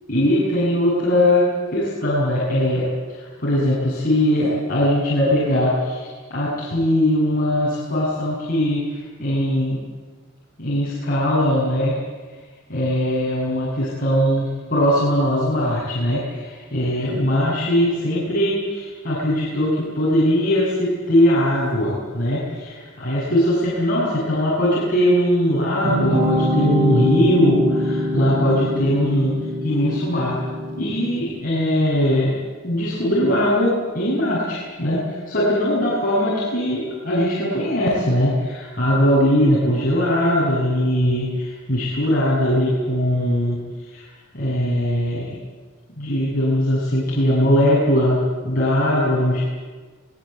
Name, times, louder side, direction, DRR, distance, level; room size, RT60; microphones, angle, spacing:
voice 1, 0.1-2.9 3.1-9.8 10.6-12.0 12.7-29.3 29.6-30.3 30.8-32.4 32.6-43.6 43.9-44.0 44.3-45.4 46.0-48.2 48.4-49.4, equal, 40° left, -8 dB, 7.2 m, -20 dB
sound 1, 25.8-31.3, equal, 40° right, 5.9 m, -23 dB
24.5 x 19.0 x 8.1 m, 1.4 s
head